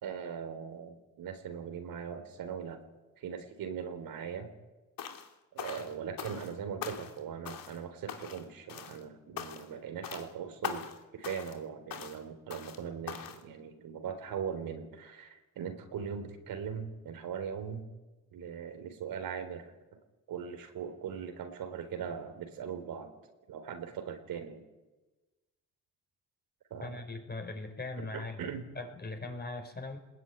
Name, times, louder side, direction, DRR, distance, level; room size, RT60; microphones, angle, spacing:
voice 1, 0.0-2.8 3.2-4.5 5.5-17.9 18.3-19.7 20.3-23.1 23.5-24.6 26.7-27.0 28.0-28.7, right 7 dB, 80° right, 7 dB, 4.2 m, -40 dB
sound 1, 5.0-5.3 5.6-6.5 6.8-7.2 7.4-7.8 8.1-8.4 8.7-9.0 9.4-9.7 10.0-10.3 10.6-11.0 11.2-11.6 11.9-12.2 12.5-12.8 13.1-13.4, left 8 dB, 75° left, 2.8 m, -41 dB
voice 2, 26.8-28.5 28.8-30.0, left 3 dB, 30° left, 5 dB, 5.3 m, -40 dB
24.0 x 20.5 x 9.4 m, 1.1 s
cardioid pair, 100°, 34 cm